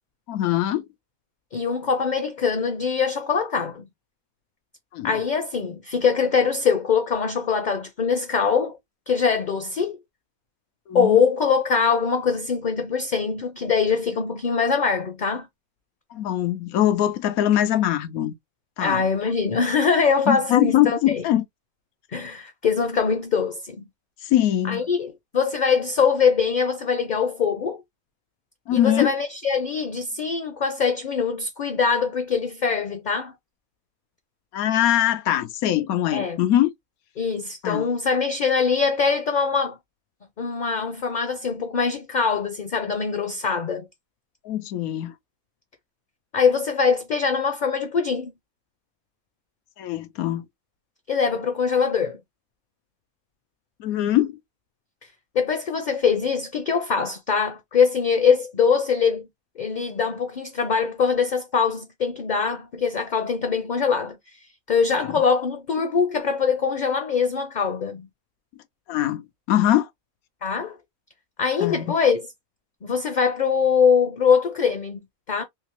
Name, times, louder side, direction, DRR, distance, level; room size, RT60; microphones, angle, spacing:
voice 1, 0.3-0.8 4.9-5.1 10.9-11.2 16.1-18.3 18.8-19.0 20.3-21.5 24.2-24.8 28.7-29.1 34.5-36.7 37.6-37.9 44.4-45.1 49.8-50.4 53.8-54.4 68.9-69.9 71.6-71.9, left 12 dB, 90° left, 1.1 m, -22 dB
voice 2, 1.5-3.8 5.0-8.8 9.1-10.0 10.9-15.5 18.8-21.2 22.1-23.9 24.7-27.8 28.7-33.3 36.1-36.4 37.2-39.8 40.4-43.8 46.3-48.3 51.1-52.2 55.3-59.3 59.6-64.4 64.7-68.1 70.4-70.8 71.4-72.3 72.8-75.0 75.3-75.4, left 6 dB, 45° left, 0.6 m, -23 dB
3.4 x 2.8 x 3.0 m
omnidirectional pair, 1.5 m